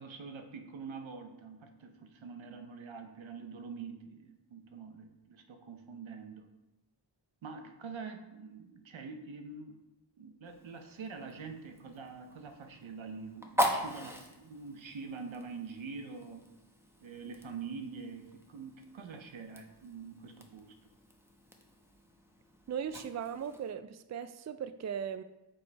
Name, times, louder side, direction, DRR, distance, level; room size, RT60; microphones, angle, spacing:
voice 1, 0.0-6.5 7.4-9.8 10.2-16.5 17.0-20.7, right 5 dB, 90° right, 6 dB, 0.8 m, -45 dB
Fire, 10.4-23.7, equal, 5° right, 1.1 m, -41 dB
voice 2, 22.7-25.2, right 8 dB, 40° right, 12 dB, 0.4 m, -38 dB
6.2 x 5.1 x 4.7 m, 0.97 s
cardioid pair, 50°, 45 cm